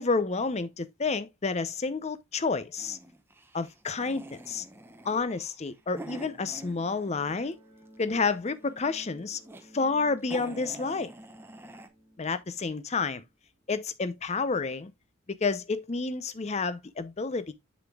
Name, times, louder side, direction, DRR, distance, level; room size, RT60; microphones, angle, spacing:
voice 1, 0.0-3.0 3.5-4.6 5.0-7.6 8.0-9.4 9.7-11.1 12.2-13.2 13.7-14.9 15.4-17.5, left 4 dB, 30° left, 0.6 m, -30 dB
sound 1, 2.8-7.4 7.7-8.5 9.1-9.6 10.0-10.1 10.2-11.9, right 1 dB, 10° right, 0.8 m, -46 dB
sound 2, 5.8-14.3, equal, 10° left, 3.3 m, -56 dB
8.0 x 7.2 x 2.3 m
head